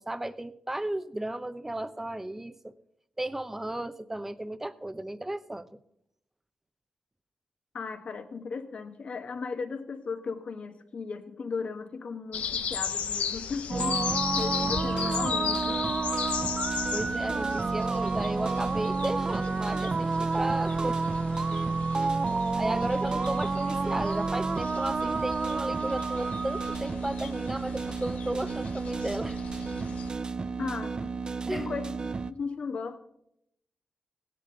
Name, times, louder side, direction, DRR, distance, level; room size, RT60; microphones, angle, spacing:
voice 1, 0.0-2.7 3.2-5.7 16.9-21.0 22.3-29.4 31.5-31.7, right 1 dB, 15° right, 13 dB, 0.8 m, -34 dB
voice 2, 7.7-14.1 14.4-15.8 30.6-31.1 31.5-31.9 32.3-33.0, left 5 dB, 60° left, 7 dB, 1.4 m, -36 dB
sound 1, 12.3-30.1, left 7 dB, 90° left, 0.8 m, -36 dB
sound 2, 13.7-32.3, right 4 dB, 35° right, 0.5 m, -30 dB
16.5 x 10.5 x 3.9 m, 0.75 s
cardioid pair, 80°, 2 cm